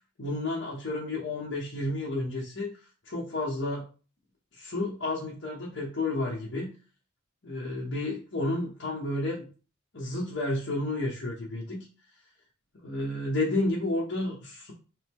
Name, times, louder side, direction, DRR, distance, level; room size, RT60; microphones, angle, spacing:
voice 1, 0.2-2.7 3.0-3.9 4.5-6.7 7.4-9.5 9.9-11.9 12.8-14.7, left 2 dB, 65° left, -5 dB, 1.0 m, -31 dB
3.4 x 3.0 x 3.6 m, 0.36 s
head